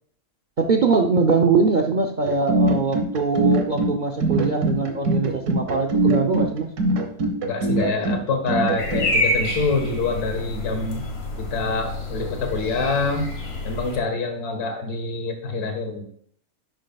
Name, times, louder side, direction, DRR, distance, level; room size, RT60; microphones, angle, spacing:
voice 1, 0.6-6.7, right 4 dB, 60° right, 2 dB, 0.5 m, -22 dB
sound 1, 2.3-9.1, right 2 dB, 85° right, 1.6 m, -22 dB
voice 2, 7.4-11.0 11.4-13.3 13.6-16.0, left 3 dB, 85° left, 5 dB, 2.0 m, -26 dB
sound 2, 8.8-14.0, left 1 dB, 45° left, 1.6 m, -28 dB
10.5 x 7.4 x 2.3 m, 0.62 s
omnidirectional pair, 1.6 m